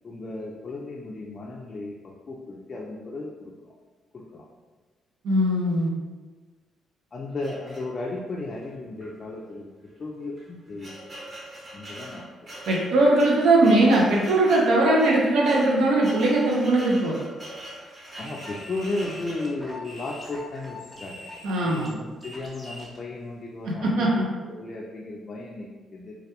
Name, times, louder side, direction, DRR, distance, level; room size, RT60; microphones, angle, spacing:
voice 1, 0.0-3.7 4.1-4.5 7.1-9.7 10.0-11.2 11.7-12.6 18.2-21.3 21.6-26.2, left 2 dB, 40° left, -2 dB, 0.3 m, -35 dB
voice 2, 5.2-5.9 12.7-17.2 21.4-21.9 23.6-24.3, right 2 dB, 80° right, -3 dB, 0.4 m, -20 dB
sound 1, 7.4-8.3 9.0-9.1 9.4-9.5 10.2-19.5, right 1 dB, 35° right, 0.9 m, -42 dB
sound 2, 18.1-23.0, left 1 dB, ahead, 0.7 m, -42 dB
2.2 x 2.1 x 2.8 m, 1.3 s
cardioid pair, 90°, 0 cm